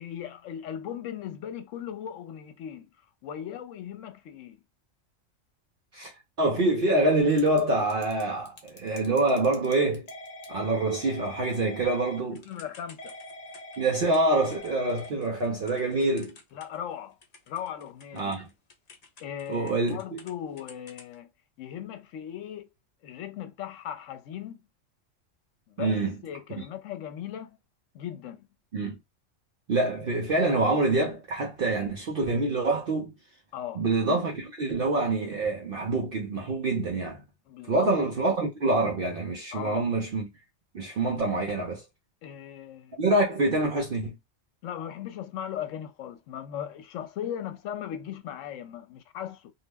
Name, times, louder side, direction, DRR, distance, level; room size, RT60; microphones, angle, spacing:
voice 1, 0.0-2.9 3.2-4.6 12.5-13.1 16.5-17.2 17.5-18.3 19.2-21.3 21.6-22.7 23.0-24.6 25.7-27.6 27.9-28.5 33.5-33.8 37.5-37.9 39.5-39.9 42.2-43.0 44.6-49.5, left 10 dB, 80° left, 0.9 m, -38 dB
voice 2, 6.4-10.1 10.5-12.4 13.8-16.3 18.2-18.5 19.5-20.2 25.8-26.1 26.6-26.7 28.7-29.0 29.7-33.1 33.8-37.2 37.7-40.3 40.7-41.8 43.0-44.2, right 2 dB, 55° right, 0.7 m, -26 dB
Typing / Telephone, 7.2-7.6 7.9-16.9 17.2-20.3 20.6-21.1, left 1 dB, 45° left, 0.6 m, -45 dB
2.4 x 2.0 x 3.3 m
omnidirectional pair, 1.3 m